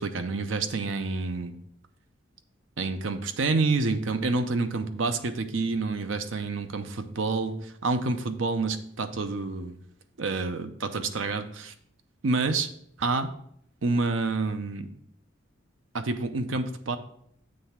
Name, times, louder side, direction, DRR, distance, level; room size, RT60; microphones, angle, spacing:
voice 1, 0.0-1.6 2.8-9.7 10.2-11.7 12.2-12.7 13.0-13.3 13.8-14.9 15.9-17.0, right 3 dB, 85° right, 9 dB, 0.6 m, -28 dB
7.6 x 3.4 x 5.7 m, 0.69 s
head